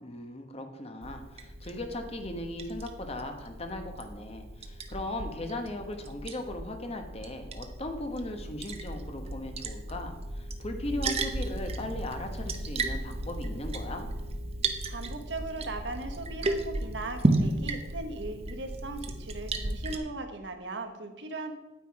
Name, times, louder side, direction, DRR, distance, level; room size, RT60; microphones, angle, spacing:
voice 1, 0.0-14.1, left 1 dB, 35° left, 5 dB, 1.1 m, -38 dB
Liquid, 1.0-20.0, right 2 dB, 35° right, 0.8 m, -34 dB
voice 2, 14.9-21.5, right 2 dB, 75° right, 6 dB, 1.3 m, -38 dB
9.2 x 9.2 x 4.7 m, 1.0 s
head